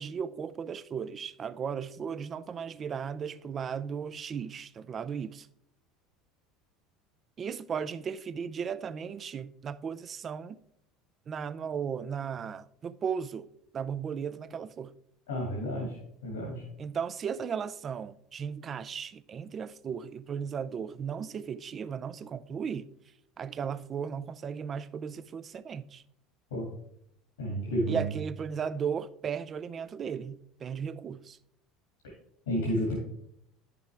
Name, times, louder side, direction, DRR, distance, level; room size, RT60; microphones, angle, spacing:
voice 1, 0.0-5.5 7.4-10.6 11.3-13.5 13.7-14.9 16.8-22.9 23.4-26.0 27.9-31.4, right 7 dB, 35° right, 0.5 m, -36 dB
voice 2, 15.3-16.0 16.2-16.6 26.5-26.7 27.4-28.0 32.5-32.9, equal, 85° left, 2.3 m, -31 dB
9.3 x 6.8 x 3.4 m
hypercardioid pair, 80°, 0 cm